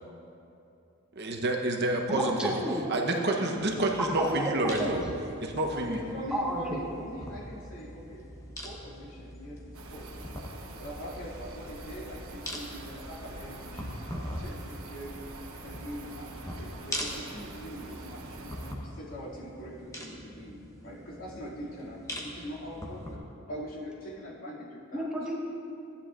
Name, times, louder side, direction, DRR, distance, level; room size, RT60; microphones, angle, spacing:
voice 1, 1.1-2.5 2.9-5.1 5.4-6.0, right 1 dB, 50° right, 1 dB, 0.9 m, -28 dB
voice 2, 2.1-2.8 4.2-4.4 4.8-4.9 6.3-6.8 24.9-25.3, right 1 dB, 5° right, -5 dB, 1.4 m, -30 dB
sound 1, 3.6-23.2, equal, 15° left, 0.9 m, -43 dB
voice 3, 5.7-8.2 8.6-9.6 9.9-10.4 10.8-14.0 14.4-15.2 15.6-16.3 16.5-25.1, equal, 75° left, -6 dB, 2.4 m, -42 dB
sound 2, 9.7-18.7, right 2 dB, 90° right, 1.0 m, -45 dB
15.5 x 10.0 x 2.5 m, 2.7 s
head